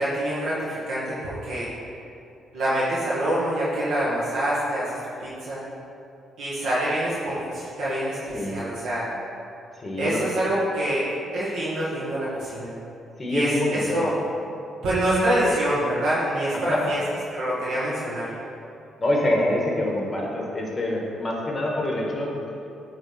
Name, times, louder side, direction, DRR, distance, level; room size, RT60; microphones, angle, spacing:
voice 1, 0.0-1.7 2.5-5.6 6.4-9.0 10.0-11.1 11.3-12.7 13.3-14.1 14.8-17.0 17.3-18.3, right 1 dB, 80° right, -8 dB, 1.2 m, -26 dB
voice 2, 9.8-10.2 13.2-14.0 16.7-16.9 19.0-22.3, left 1 dB, 20° left, -2 dB, 1.4 m, -25 dB
8.1 x 3.2 x 4.4 m, 2.6 s
cardioid pair, 90°, 0 cm